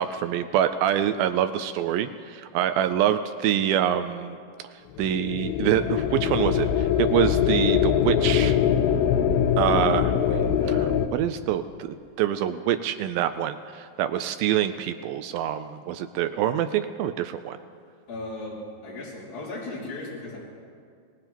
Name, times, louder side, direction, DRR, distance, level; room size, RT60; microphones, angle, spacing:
voice 1, 0.0-4.4 5.0-8.6 9.6-17.6, right 10 dB, 80° right, 9 dB, 2.3 m, -26 dB
sound 1, 5.0-11.1, left 9 dB, 90° left, 2.6 m, -23 dB
voice 2, 18.1-20.4, left 2 dB, 70° left, -9 dB, 5.3 m, -36 dB
23.0 x 20.5 x 3.0 m, 2.2 s
omnidirectional pair, 4.3 m